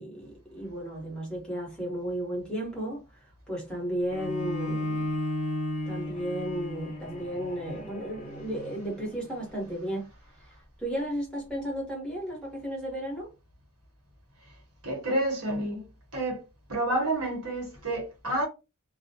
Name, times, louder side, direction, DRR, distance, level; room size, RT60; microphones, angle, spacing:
voice 1, 0.0-5.2 5.9-10.1 10.8-13.3, right 1 dB, 5° left, 1.0 m, -34 dB
Bowed string instrument, 4.1-9.3, left 1 dB, 35° left, 0.8 m, -34 dB
voice 2, 14.8-15.8 16.1-16.4 16.7-18.5, right 1 dB, 75° right, 1.1 m, -29 dB
2.4 x 2.1 x 2.7 m
head